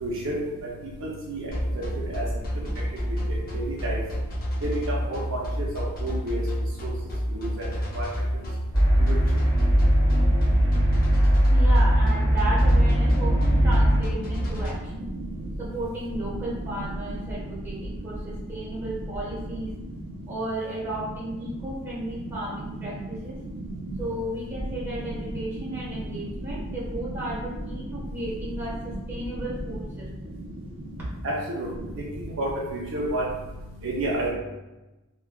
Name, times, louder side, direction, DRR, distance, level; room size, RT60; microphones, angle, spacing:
voice 1, 0.0-0.4 1.3-1.4 1.8-1.9 2.1-2.2 3.5-4.0 5.1-5.4 6.0-6.4 6.8-6.9 7.3-7.5 8.0-8.1 9.0-9.2 23.8-23.9 31.2-31.7 32.4-33.2 33.8-34.3, right 1 dB, 60° right, -4 dB, 0.6 m, -29 dB
sound 1, 1.5-14.7, equal, 40° left, 0.7 m, -29 dB
sound 2, 8.7-14.0, equal, 15° left, 1.4 m, -20 dB
voice 2, 11.5-15.1 15.6-19.7 20.3-23.4 24.0-30.4 31.0-31.1, right 1 dB, 10° right, -7 dB, 1.1 m, -34 dB
3.4 x 2.3 x 2.2 m, 1.0 s
head